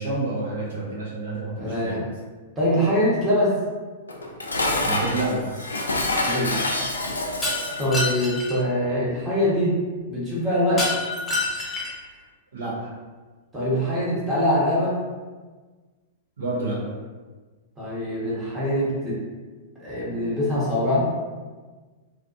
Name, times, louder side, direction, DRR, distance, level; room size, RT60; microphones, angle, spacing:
voice 1, 0.0-2.0 4.8-5.7 12.5-12.9 16.4-16.8, right 2 dB, 70° right, -6 dB, 0.8 m, -29 dB
voice 2, 1.6-2.0 2.6-3.5 6.2-6.6 7.8-9.7 10.1-10.8 13.5-14.9 17.8-19.2 19.8-21.0, equal, 15° right, -8 dB, 1.1 m, -23 dB
Dishes pots and pans, 4.1-7.9, left 2 dB, 80° left, 0.3 m, -26 dB
Shatter, 7.4-8.6 10.8-12.1, left 2 dB, 15° left, 0.7 m, -27 dB
2.4 x 2.3 x 2.5 m, 1.4 s
figure-of-eight pair, 100°, 0 cm